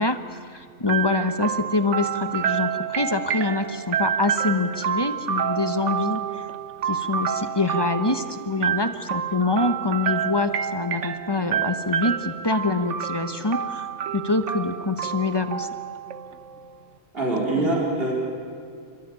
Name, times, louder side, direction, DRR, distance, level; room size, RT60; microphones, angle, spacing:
voice 1, 0.0-6.5 6.9-13.9 14.1-15.7 17.6-17.8, left 3 dB, 25° left, 9 dB, 0.9 m, -25 dB
sound 1, 0.9-16.7, right 8 dB, 80° right, 1.2 m, -28 dB
voice 2, 17.1-18.1, right 2 dB, 55° right, -3 dB, 4.3 m, -24 dB
28.5 x 13.5 x 8.9 m, 2.2 s
omnidirectional pair, 1.2 m